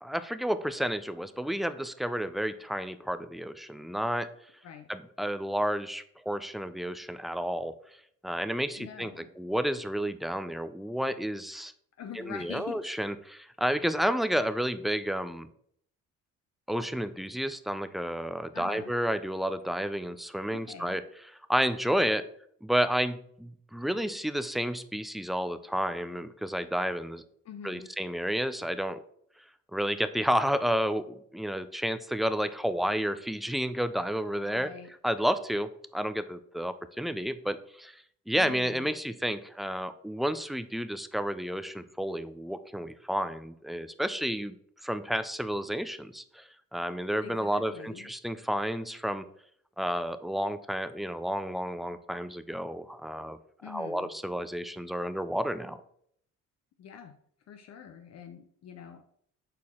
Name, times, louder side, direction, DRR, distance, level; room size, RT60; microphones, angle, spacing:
voice 1, 0.0-4.3 4.9-7.7 8.2-9.1 9.4-11.7 12.2-15.5 16.7-21.0 21.5-22.2 22.6-27.2 27.6-29.0 29.7-31.0 31.3-34.7 35.0-37.9 38.3-44.5 44.8-49.3 49.8-53.4 53.7-55.8, equal, ahead, 12 dB, 0.4 m, -31 dB
voice 2, 8.8-9.3 12.0-12.9 18.5-18.9 20.5-21.0 27.4-27.9 34.4-34.9 38.3-38.9 47.2-48.1 53.6-54.1 56.8-57.2 57.5-59.0, left 8 dB, 60° left, 7 dB, 0.6 m, -44 dB
6.6 x 4.2 x 3.6 m, 0.66 s
cardioid pair, 90°, 30 cm